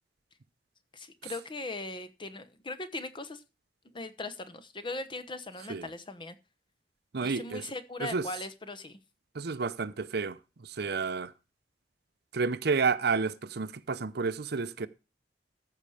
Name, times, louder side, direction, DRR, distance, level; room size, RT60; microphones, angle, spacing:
voice 1, 0.9-3.4 3.9-6.3 7.2-9.0, left 2 dB, 30° left, 1.0 m, -39 dB
voice 2, 7.1-7.6 8.0-8.3 9.3-10.4 10.6-11.3 12.3-14.9, right 4 dB, 65° right, 0.7 m, -30 dB
14.5 x 5.6 x 4.8 m
head